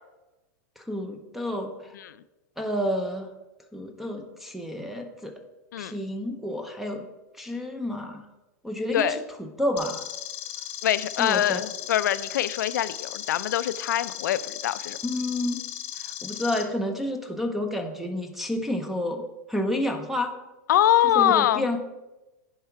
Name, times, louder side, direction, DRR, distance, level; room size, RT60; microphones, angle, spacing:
voice 1, 0.8-1.9 2.6-3.3 3.7-5.3 5.8-7.1 7.4-8.3 8.6-10.0 11.2-11.6 15.0-15.6 16.0-19.2 19.5-20.3 21.1-21.8, left 1 dB, ahead, 5 dB, 0.6 m, -30 dB
sound 1, 9.8-16.6, left 12 dB, 40° left, 0.9 m, -37 dB
voice 2, 10.8-15.0 20.7-21.7, left 11 dB, 85° left, 15 dB, 0.5 m, -24 dB
10.5 x 4.7 x 4.6 m, 1.0 s
supercardioid pair, 155°, 10 cm